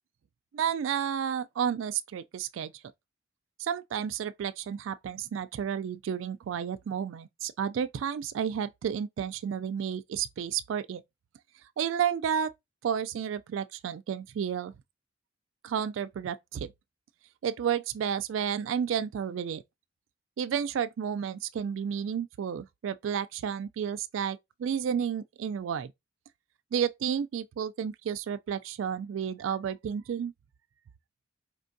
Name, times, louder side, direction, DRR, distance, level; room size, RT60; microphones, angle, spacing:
voice 1, 0.5-2.7 3.6-11.0 11.8-12.5 12.8-14.7 15.6-16.7 17.4-19.6 20.4-25.9 26.7-30.3, right 8 dB, 80° right, 0.3 m, -31 dB
4.3 x 3.2 x 2.6 m
head